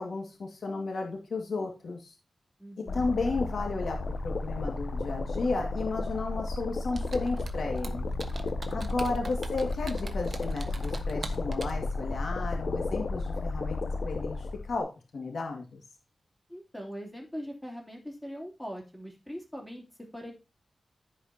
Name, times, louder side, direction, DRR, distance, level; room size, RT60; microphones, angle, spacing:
voice 1, 0.0-2.1 2.9-4.0 4.2-8.1 8.7-15.8, left 3 dB, 80° left, 2 dB, 1.9 m, -33 dB
voice 2, 2.6-3.1 16.5-20.3, equal, 10° left, 0 dB, 3.1 m, -42 dB
sound 1, 2.9-14.8, left 3 dB, 65° left, 0.8 m, -33 dB
Computer keyboard, 6.9-11.8, right 2 dB, 50° right, 1.2 m, -43 dB
14.5 x 5.1 x 2.8 m, 0.29 s
wide cardioid pair, 100°, 0 cm